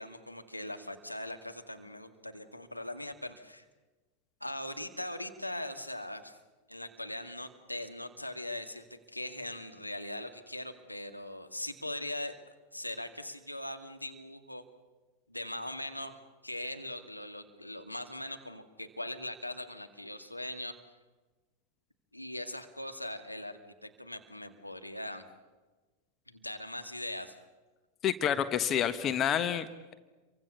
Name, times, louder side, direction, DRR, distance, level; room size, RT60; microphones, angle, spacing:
voice 1, 0.0-3.6 4.4-6.4 6.7-12.4 12.7-14.6 15.3-20.8 22.1-25.2 26.3-27.3, left 1 dB, 85° left, 6 dB, 2.2 m, -40 dB
voice 2, 28.0-29.9, left 9 dB, 30° left, 12 dB, 1.4 m, -29 dB
29.0 x 24.0 x 7.0 m, 1.3 s
figure-of-eight pair, 90°, 0 cm